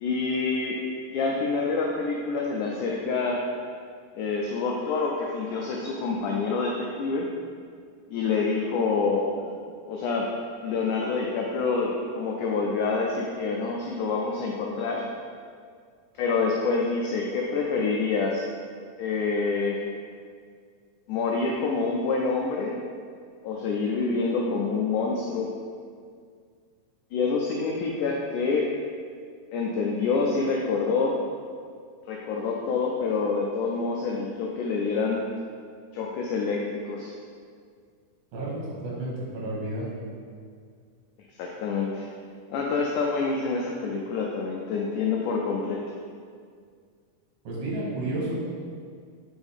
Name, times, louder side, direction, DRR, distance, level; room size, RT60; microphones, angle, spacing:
voice 1, 0.0-0.8 1.1-3.4 4.1-7.3 8.1-9.6 9.9-10.3 10.6-15.0 16.2-18.5 19.0-19.8 21.1-22.8 23.4-25.5 27.1-28.7 29.5-31.2 32.1-35.3 35.9-37.1 41.4-42.1 42.5-46.0, left 4 dB, 85° left, -1 dB, 1.8 m, -27 dB
voice 2, 38.8-39.9 47.4-48.3, right 2 dB, 75° right, -5 dB, 3.3 m, -31 dB
8.0 x 4.4 x 3.5 m, 2.1 s
omnidirectional pair, 4.2 m